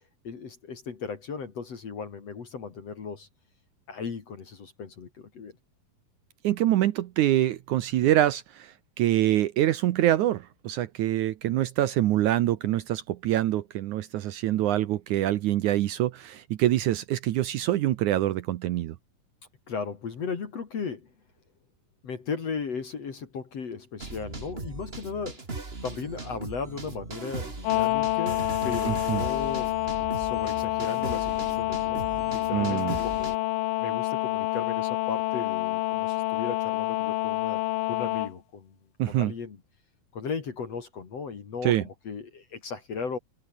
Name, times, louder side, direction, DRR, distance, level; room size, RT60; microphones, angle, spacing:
voice 1, 0.2-3.3 3.9-5.6 19.7-21.1 22.0-25.4 25.8-29.8 30.2-33.4 33.8-37.6 37.9-38.8 39.1-39.6 40.1-43.2, left 5 dB, 50° left, 3.5 m, -36 dB
voice 2, 6.4-19.0 28.9-29.2 32.5-33.0 39.0-39.3 41.6-41.8, right 13 dB, 70° right, 2.0 m, -25 dB
sound 1, 24.0-33.4, right 3 dB, 20° right, 2.1 m, -38 dB
sound 2, 27.6-38.3, left 17 dB, 80° left, 2.5 m, -28 dB
omnidirectional pair, 4.1 m